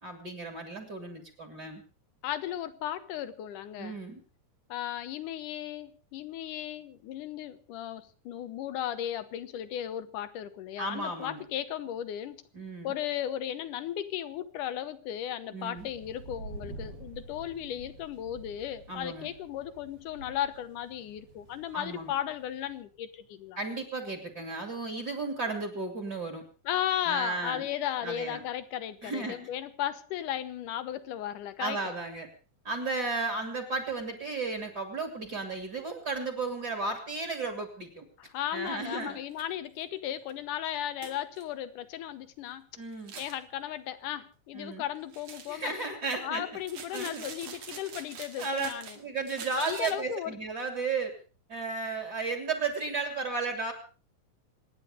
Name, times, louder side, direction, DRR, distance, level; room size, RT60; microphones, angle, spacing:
voice 1, 0.0-1.8 3.8-4.2 10.8-11.4 12.5-12.9 15.5-15.9 18.9-19.3 21.7-22.1 23.6-26.4 27.1-27.6 28.0-28.4 29.0-29.5 31.6-32.3 32.6-38.1 38.5-39.2 42.8-43.1 44.5-44.8 45.5-46.5 46.9-47.2 48.4-48.7 49.0-51.2 51.5-53.7, right 3 dB, 30° right, 5 dB, 2.8 m, -34 dB
voice 2, 2.2-4.0 4.7-12.4 12.8-23.6 26.7-31.9 38.2-42.7 43.2-45.7 46.2-49.0 49.6-50.3, left 11 dB, 70° left, 13 dB, 2.3 m, -35 dB
sound 1, 15.7-22.8, right 3 dB, 75° right, 8.1 m, -48 dB
sound 2, 38.7-38.8 39.3-39.4 39.8-39.9 40.3-40.4 41.0-41.4 42.9-43.4 45.1-45.7 46.6-49.0 49.3-49.9, right 6 dB, 60° right, 3.2 m, -45 dB
26.5 x 9.8 x 5.0 m, 0.38 s
omnidirectional pair, 4.1 m